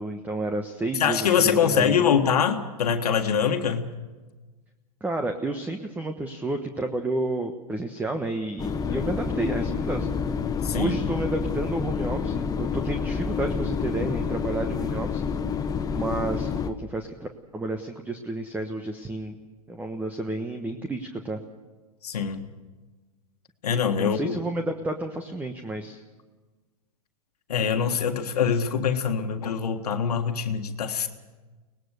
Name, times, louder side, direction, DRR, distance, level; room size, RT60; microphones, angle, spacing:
voice 1, 0.0-2.1 5.0-10.1 10.7-15.2 15.9-19.3 19.7-21.4 24.0-26.0, right 2 dB, 10° right, 6 dB, 1.2 m, -31 dB
voice 2, 1.0-3.9 10.6-11.0 22.0-22.5 23.6-24.4 27.5-31.1, left 7 dB, 75° left, 5 dB, 1.7 m, -24 dB
sound 1, 8.6-16.7, left 6 dB, 20° left, 1.1 m, -28 dB
24.0 x 19.5 x 6.7 m, 1.3 s
hypercardioid pair, 110°, 20 cm